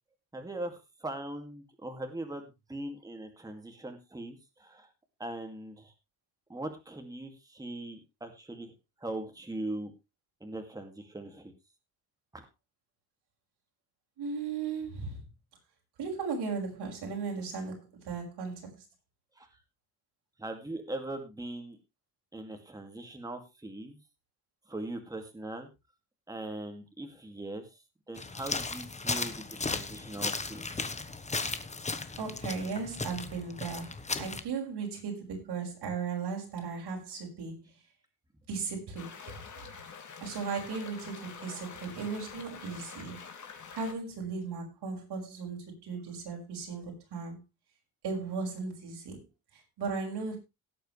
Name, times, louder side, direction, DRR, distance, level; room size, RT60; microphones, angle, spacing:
voice 1, 0.3-4.9 5.2-5.9 6.5-8.7 9.0-9.9 10.4-11.5 12.3-12.5 19.4-19.5 20.4-21.8 22.3-24.0 24.7-25.7 26.3-30.9, right 1 dB, 10° right, 2.3 m, -40 dB
voice 2, 14.2-15.3 16.0-18.8 32.2-37.7 38.5-39.3 40.2-43.2 43.7-47.4 48.0-49.2 49.5-50.4, right 5 dB, 90° right, 5.9 m, -36 dB
sound 1, 28.2-34.4, left 3 dB, 15° left, 1.2 m, -36 dB
sound 2, 39.0-43.9, left 6 dB, 50° left, 2.8 m, -46 dB
17.5 x 8.6 x 3.3 m
wide cardioid pair, 150°, 39 cm